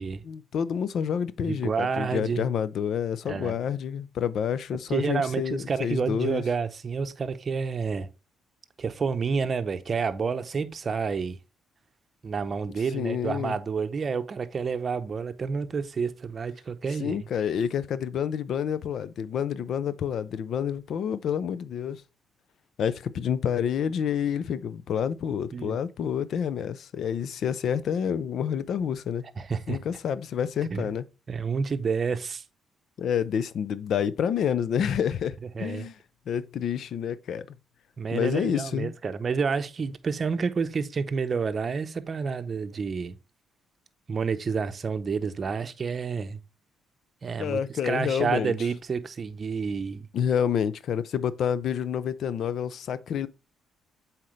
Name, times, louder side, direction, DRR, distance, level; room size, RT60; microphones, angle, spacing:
voice 1, 0.2-6.4 12.9-13.6 17.0-22.0 22.8-29.2 29.7-31.0 33.0-36.0 36.3-37.5 38.1-38.9 47.4-48.5 50.1-53.3, left 8 dB, 65° left, 0.5 m, -28 dB
voice 2, 1.4-2.4 3.3-3.6 4.9-8.1 8.8-11.4 12.2-17.2 25.5-25.8 29.4-29.8 30.7-30.9 31.3-32.4 35.5-35.9 38.0-43.2 44.1-46.4 47.2-50.1, right 5 dB, 40° right, 0.7 m, -29 dB
7.7 x 4.3 x 3.1 m
cardioid pair, 90°, 0 cm